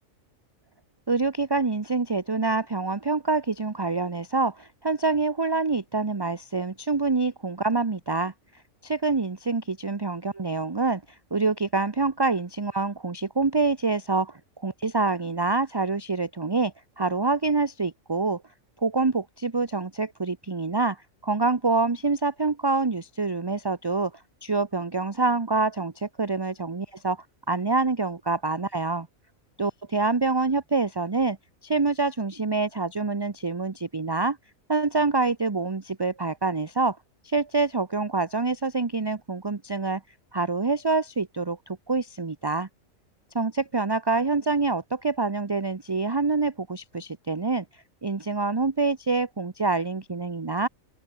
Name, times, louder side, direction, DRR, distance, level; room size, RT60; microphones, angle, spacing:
voice 1, 1.1-8.3 8.8-11.0 11.3-18.4 18.8-21.0 21.2-24.1 24.4-27.2 27.5-29.1 29.6-31.4 31.6-34.4 34.7-37.0 37.2-40.0 40.3-42.7 43.3-47.6 48.0-50.7, right 3 dB, 20° right, 0.8 m, -26 dB
open air
omnidirectional pair, 1.4 m